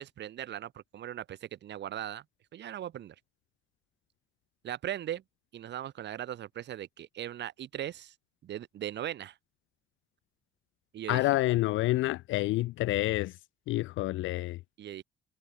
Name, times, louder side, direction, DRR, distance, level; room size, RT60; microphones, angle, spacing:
voice 1, 0.0-2.2 2.5-3.2 4.6-5.2 5.5-8.1 8.4-9.4 10.9-11.3 14.8-15.0, right 11 dB, 60° right, 0.8 m, -39 dB
voice 2, 11.1-13.3 13.7-14.6, left 17 dB, 80° left, 0.4 m, -28 dB
cardioid pair, 90°, 20 cm